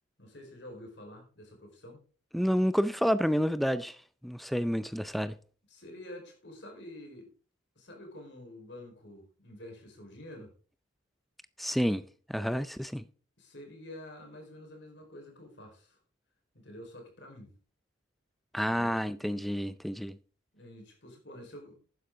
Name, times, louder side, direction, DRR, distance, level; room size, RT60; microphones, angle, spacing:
voice 1, 0.2-2.0 5.7-7.3 7.7-10.5 13.4-16.0 16.5-17.5 20.5-21.7, left 1 dB, 55° left, 4.6 m, -48 dB
voice 2, 2.3-4.0 4.2-5.4 11.6-12.0 12.3-13.0 18.5-20.2, equal, ahead, 0.4 m, -29 dB
12.0 x 10.0 x 3.8 m
head